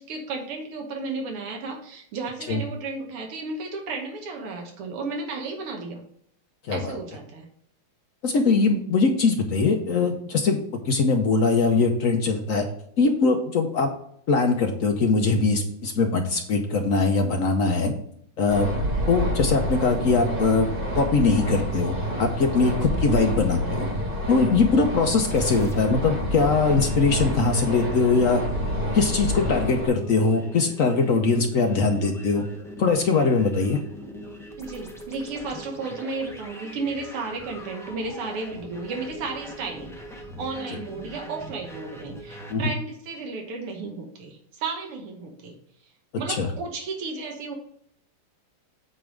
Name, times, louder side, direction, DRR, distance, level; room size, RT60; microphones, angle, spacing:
voice 1, 0.0-6.0 6.7-7.5 17.8-18.0 22.8-22.9 24.8-24.9 34.6-40.0 40.4-45.6 46.2-47.6, right 3 dB, 90° right, 2 dB, 2.0 m, -33 dB
voice 2, 6.7-7.0 8.2-10.6 10.8-12.6 13.0-13.9 14.3-17.9 18.4-18.7 19.1-20.7 20.9-23.9 24.3-28.4 28.9-32.4 32.8-33.8 42.5-42.6 46.4-46.5, left 4 dB, 70° left, 4 dB, 0.7 m, -21 dB
sound 1, 18.5-29.9, equal, 25° right, 1.9 m, -28 dB
sound 2, 25.2-42.6, equal, 5° left, 0.3 m, -41 dB
8.6 x 3.4 x 6.1 m, 0.66 s
omnidirectional pair, 2.4 m